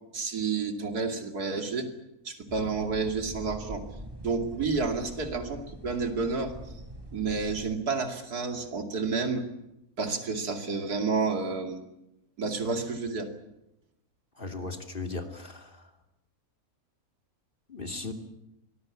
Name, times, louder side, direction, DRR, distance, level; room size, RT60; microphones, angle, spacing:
voice 1, 0.1-1.9 2.2-3.9 4.2-6.5 7.1-9.4 10.0-11.8 12.4-13.3, right 4 dB, 85° right, 5 dB, 3.1 m, -30 dB
sound 1, 2.5-7.8, right 1 dB, 15° right, 3.2 m, -43 dB
voice 2, 14.4-15.8 17.7-18.1, left 3 dB, 35° left, 5 dB, 2.8 m, -37 dB
24.5 x 20.5 x 8.5 m, 0.87 s
omnidirectional pair, 1.6 m